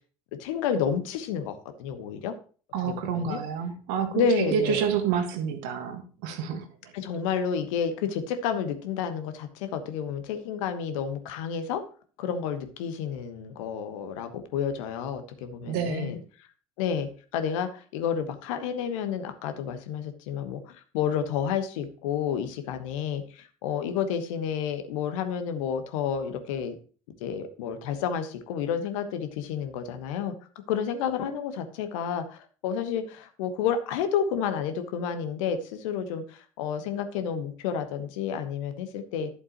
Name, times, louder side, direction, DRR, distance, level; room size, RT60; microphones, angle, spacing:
voice 1, 0.4-2.3 2.8-3.4 4.1-4.8 6.9-11.8 12.2-16.2 16.8-26.8 27.2-30.3 30.7-39.3, left 7 dB, 65° left, 9 dB, 1.3 m, -30 dB
voice 2, 2.7-6.9 15.6-16.2, right 7 dB, 60° right, 7 dB, 1.6 m, -29 dB
11.0 x 7.3 x 3.0 m, 0.39 s
figure-of-eight pair, 60°, 18 cm